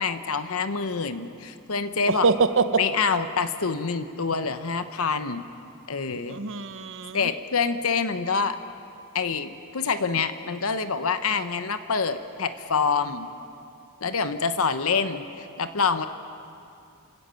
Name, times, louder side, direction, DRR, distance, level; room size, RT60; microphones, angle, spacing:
voice 1, 0.0-2.2 2.8-5.4 5.9-6.4 7.1-8.6 9.1-13.3 14.0-16.1, left 5 dB, 65° left, 10 dB, 1.0 m, -26 dB
voice 2, 2.1-2.6 6.3-7.3, right 4 dB, 60° right, 10 dB, 0.9 m, -24 dB
28.0 x 17.0 x 7.0 m, 2.6 s
head